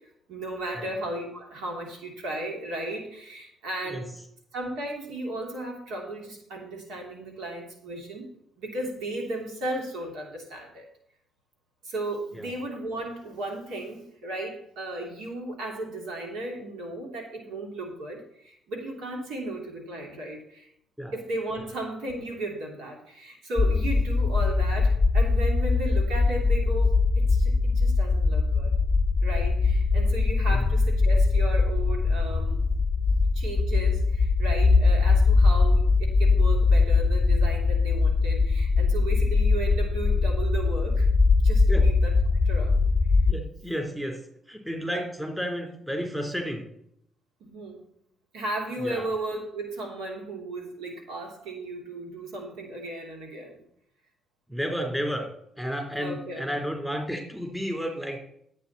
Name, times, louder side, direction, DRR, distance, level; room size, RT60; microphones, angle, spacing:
voice 1, 0.3-4.1 4.5-8.3 8.6-10.9 11.8-20.7 21.1-28.7 29.2-32.6 33.3-41.1 41.4-42.1 42.4-42.8 44.8-45.1 47.4-47.9 48.3-53.6 56.0-56.4, right 1 dB, 85° right, 0 dB, 3.0 m, -35 dB
sound 1, 23.6-43.3, left 3 dB, 25° left, 0.6 m, -21 dB
voice 2, 43.3-44.2 44.5-46.6 48.8-49.1 54.5-55.3 55.6-58.2, equal, 10° right, 2 dB, 3.7 m, -32 dB
11.5 x 8.4 x 4.2 m, 0.72 s
cardioid pair, 90°, 0 cm